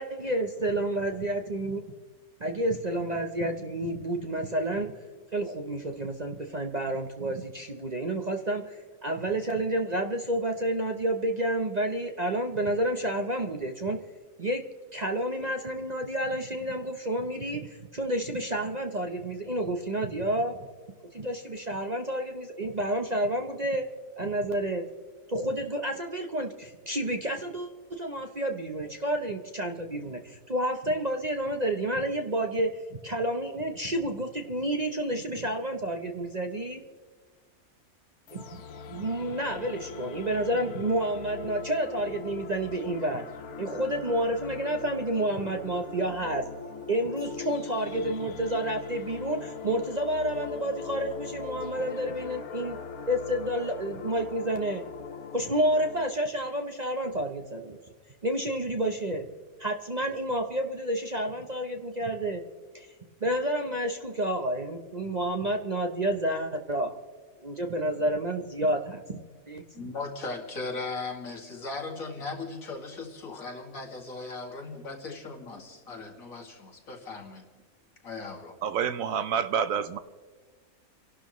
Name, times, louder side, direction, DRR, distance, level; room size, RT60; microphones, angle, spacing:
voice 1, 0.0-1.8 2.4-4.9 5.3-14.0 14.4-14.6 14.9-20.6 21.1-23.9 24.2-24.8 25.3-36.8 38.3-38.6 38.9-43.2 43.6-46.5 46.9-52.8 53.1-54.8 55.3-57.8 58.2-59.3 59.6-62.4 62.7-62.9 63.2-67.0 67.4-69.2 69.5-69.9, right 1 dB, 35° right, 4 dB, 0.8 m, -30 dB
sound 1, 38.3-56.1, left 6 dB, 85° left, 1.3 m, -41 dB
voice 2, 69.7-77.5 78.0-78.6, left 3 dB, 65° left, 0 dB, 2.5 m, -38 dB
voice 3, 78.6-80.0, right 7 dB, 70° right, 13 dB, 1.0 m, -28 dB
29.0 x 12.0 x 3.1 m, 1.5 s
omnidirectional pair, 1.5 m